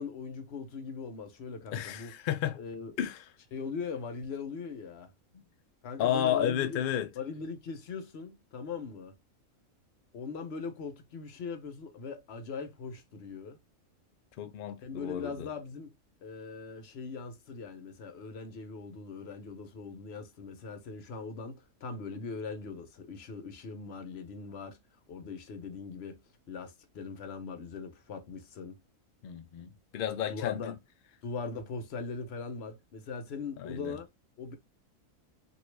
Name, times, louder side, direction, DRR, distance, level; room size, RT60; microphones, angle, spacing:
voice 1, 0.0-2.2 2.6-2.9 3.5-5.1 5.8-6.8 7.2-9.1 10.1-13.6 14.8-15.9 16.2-24.8 25.1-26.2 26.5-28.8 30.3-30.8 31.2-34.1 34.4-34.5, left 5 dB, 55° left, 0.8 m, -40 dB
voice 2, 1.7-2.6 3.0-3.2 6.0-7.1 14.4-15.5 29.2-30.7 33.6-34.0, left 10 dB, 85° left, 0.4 m, -32 dB
3.0 x 2.7 x 3.1 m
omnidirectional pair, 1.5 m